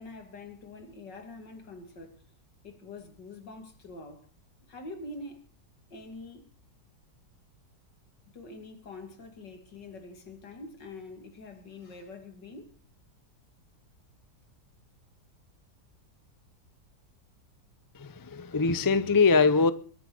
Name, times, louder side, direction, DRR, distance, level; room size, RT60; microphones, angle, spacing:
voice 1, 0.0-2.2 2.6-4.3 4.7-5.4 5.9-6.5 8.3-12.7, left 2 dB, 85° left, 3.1 m, -45 dB
voice 2, 17.9-19.7, left 4 dB, 30° left, 0.4 m, -23 dB
22.0 x 8.0 x 6.2 m
omnidirectional pair, 1.8 m